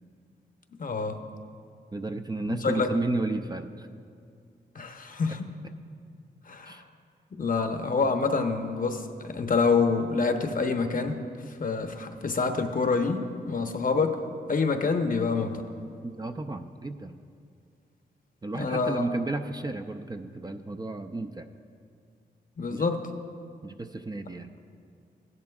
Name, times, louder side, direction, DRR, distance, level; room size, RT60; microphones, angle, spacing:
voice 1, 0.8-1.2 2.5-2.9 4.7-5.4 6.5-6.8 7.3-11.2 11.5-13.2 13.5-14.2 14.5-15.6 18.5-19.0 22.6-23.0, left 4 dB, 50° left, 6 dB, 0.9 m, -27 dB
voice 2, 1.9-3.9 6.6-6.8 16.0-17.2 18.4-21.5 22.7-22.8 23.6-24.5, right 2 dB, 20° right, 6 dB, 0.5 m, -32 dB
16.0 x 11.0 x 2.4 m, 2.3 s
cardioid pair, 60°, 19 cm